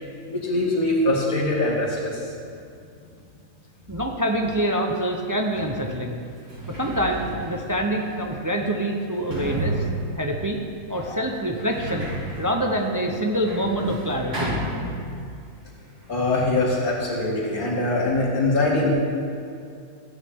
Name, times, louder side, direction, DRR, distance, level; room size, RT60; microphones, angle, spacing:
voice 1, 0.3-2.1 11.0-11.2 16.1-18.9, left 2 dB, 60° left, -4 dB, 2.7 m, -23 dB
voice 2, 3.9-6.2 6.8-9.9 10.2-10.6 10.9-12.1 12.4-14.6, right 1 dB, 30° right, 1 dB, 0.3 m, -25 dB
Sliding door, 5.5-5.6 6.3-15.4 15.7-16.5, right 2 dB, 70° right, 3.5 m, -33 dB
15.5 x 9.6 x 3.6 m, 2.4 s
omnidirectional pair, 1.8 m